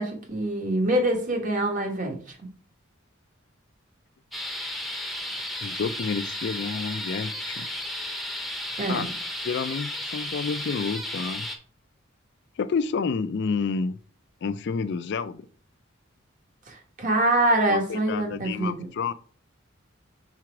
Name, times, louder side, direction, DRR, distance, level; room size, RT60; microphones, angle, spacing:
voice 1, 0.0-2.4 8.8-9.1 16.7-18.9, right 1 dB, 40° right, 1.5 m, -25 dB
sound 1, 4.3-11.6, left 1 dB, ahead, 0.8 m, -33 dB
voice 2, 5.3-7.7 8.9-9.1 9.4-11.5 12.6-14.0 14.4-15.5 17.7-19.1, left 5 dB, 60° left, 0.4 m, -29 dB
4.9 x 4.6 x 4.8 m
head